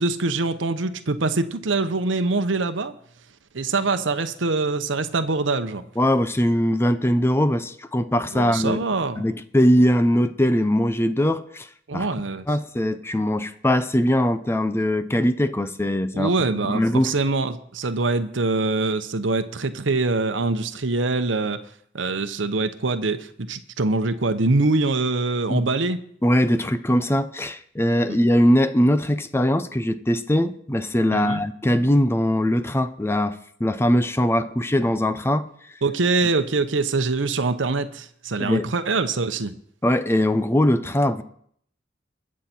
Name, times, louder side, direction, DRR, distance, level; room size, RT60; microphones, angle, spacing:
voice 1, 0.0-2.9 3.5-5.8 8.3-9.2 11.9-12.5 16.1-21.6 21.9-26.0 28.1-28.2 31.1-31.4 35.8-39.5, right 3 dB, 85° right, 0.9 m, -24 dB
voice 2, 6.0-8.8 9.2-11.7 11.9-12.1 12.5-16.3 16.6-17.1 25.5-25.7 26.2-35.5 38.4-38.6 39.8-41.2, equal, 15° left, 0.6 m, -21 dB
22.0 x 7.5 x 4.4 m
head